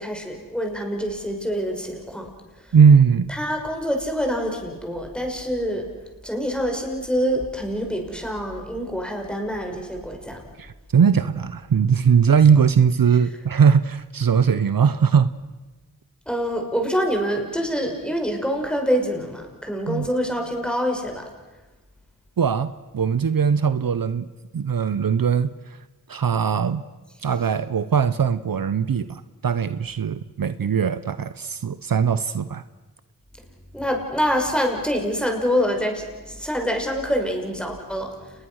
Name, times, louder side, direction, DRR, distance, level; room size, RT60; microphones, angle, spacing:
voice 1, 0.0-2.3 3.3-5.9 6.2-10.4 16.3-21.3 33.7-38.5, equal, ahead, 2 dB, 6.0 m, -26 dB
voice 2, 2.7-3.3 10.6-15.3 19.9-20.1 22.4-24.3 24.5-25.5 26.1-26.8 27.2-32.6, right 6 dB, 65° right, 14 dB, 0.8 m, -20 dB
30.0 x 20.5 x 6.4 m, 1.2 s
cardioid pair, 40°, 38 cm